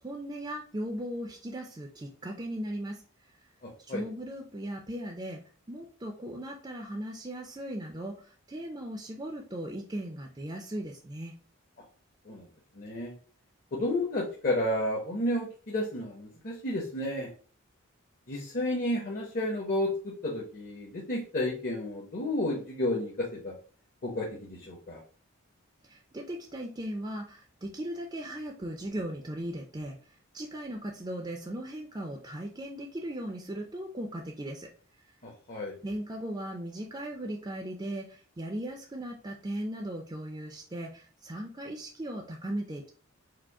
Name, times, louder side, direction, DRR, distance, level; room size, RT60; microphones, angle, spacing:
voice 1, 0.0-3.1 3.8-5.4 5.7-11.3 25.8-34.7 35.8-42.9, right 1 dB, 20° right, 1 dB, 0.5 m, -38 dB
voice 2, 3.6-4.0 12.3-12.4 12.7-13.1 13.7-17.3 18.3-23.5 24.0-25.0 35.2-35.7, left 1 dB, 40° left, -2 dB, 0.8 m, -31 dB
4.9 x 2.0 x 4.6 m, 0.42 s
head